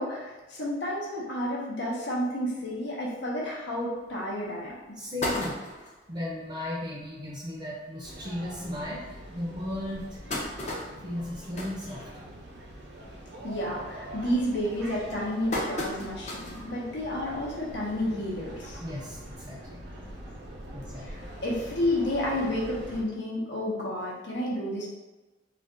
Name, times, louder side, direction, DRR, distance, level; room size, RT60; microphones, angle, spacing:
voice 1, 0.0-4.8 13.4-18.8 21.0-24.9, left 1 dB, 80° left, -4 dB, 0.8 m, -31 dB
sound 1, 4.1-4.2 4.7-4.8 5.0-6.0 6.6-6.7 7.0-7.1 7.4-7.6 8.3-8.4 8.9-9.0 9.7-12.6 13.0-13.3 13.6-14.0 14.7-16.7 17.1-17.2 18.4-18.5, left 1 dB, 40° left, 0.5 m, -34 dB
voice 2, 5.0-5.6 6.1-10.0 11.0-12.2 18.8-19.9 20.7-21.3, left 1 dB, 25° right, -5 dB, 0.5 m, -36 dB
sound 2, 8.0-23.0, right 1 dB, 70° right, 0.6 m, -44 dB
2.4 x 2.3 x 3.7 m, 1.1 s
head